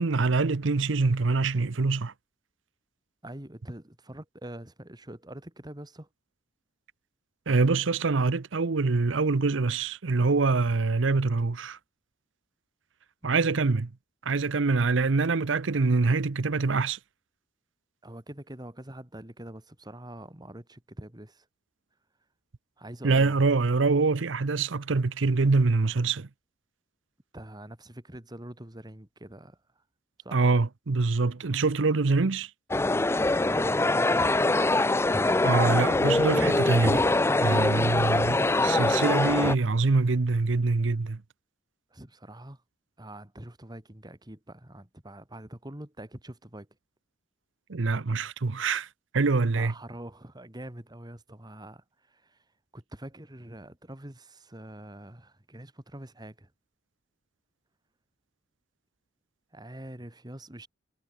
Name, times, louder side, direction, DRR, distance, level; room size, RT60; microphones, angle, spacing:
voice 1, 0.0-2.1 7.5-11.8 13.2-13.9 14.3-17.0 23.0-26.3 30.3-32.5 35.4-37.0 37.4-41.2 47.7-48.9 49.1-49.7, right 3 dB, 70° right, 0.7 m, -25 dB
voice 2, 3.2-6.1 13.2-13.6 18.0-21.5 22.8-23.4 27.3-29.8 30.2-30.4 33.4-34.5 41.9-42.6 43.0-46.7 49.5-52.5 52.7-56.5 59.5-60.7, right 1 dB, 20° right, 2.2 m, -44 dB
sound 1, 32.7-39.6, left 2 dB, 15° left, 0.5 m, -23 dB
head